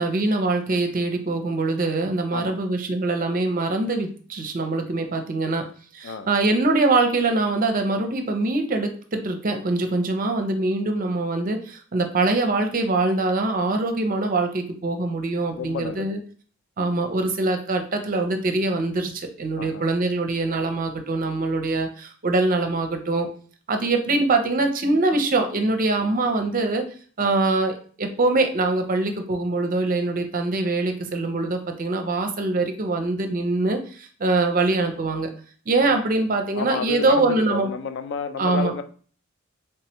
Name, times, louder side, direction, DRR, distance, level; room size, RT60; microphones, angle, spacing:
voice 1, 0.0-5.6 5.9-16.2 16.8-23.3 23.7-26.9 27.2-35.3 35.7-37.7 38.4-38.7, right 2 dB, 45° right, 0.6 m, -23 dB
voice 2, 15.6-16.2 19.6-19.8 27.2-27.3 35.9-36.0 36.5-38.8, left 5 dB, 60° left, 0.4 m, -31 dB
3.4 x 3.2 x 2.9 m
head